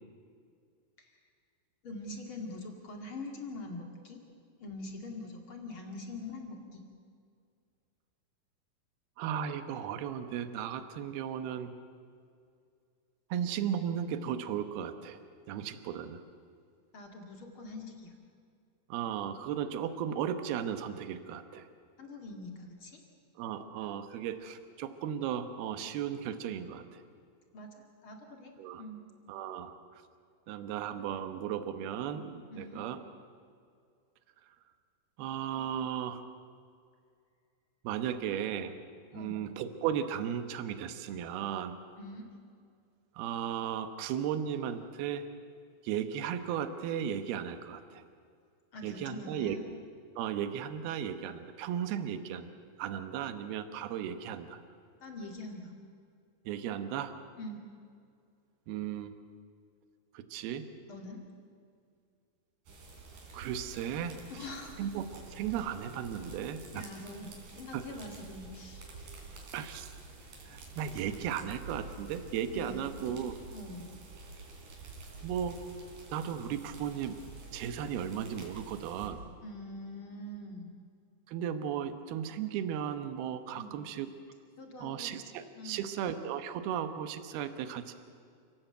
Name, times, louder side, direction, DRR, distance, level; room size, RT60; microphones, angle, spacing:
voice 1, 1.8-4.2 4.6-6.8 16.9-18.1 22.0-23.0 27.5-29.0 32.5-32.8 39.1-39.4 42.0-42.3 48.7-49.6 55.0-55.7 57.4-57.6 60.9-61.2 64.3-64.9 66.7-69.1 72.5-72.8 73.5-74.0 79.4-80.7 83.5-83.7 84.6-85.1 85.5-85.9, left 2 dB, 45° left, 2 dB, 1.7 m, -44 dB
voice 2, 9.2-11.7 13.3-15.2 15.5-16.2 18.9-21.7 23.4-27.0 28.6-28.8 29.3-29.8 30.5-33.0 35.2-36.3 37.8-38.8 39.1-41.8 43.2-45.2 45.8-48.0 48.8-49.7 50.2-52.5 52.8-54.6 56.5-57.1 58.7-59.1 60.1-60.7 63.3-64.2 64.8-66.9 67.7-67.9 69.5-69.9 70.5-73.4 75.2-75.6 76.1-77.2 77.5-79.2 81.3-84.1 84.8-87.9, right 9 dB, 75° right, 9 dB, 2.4 m, -35 dB
sound 1, 62.7-79.1, right 3 dB, 45° right, 4.7 m, -49 dB
29.0 x 17.5 x 8.0 m, 2.3 s
omnidirectional pair, 5.9 m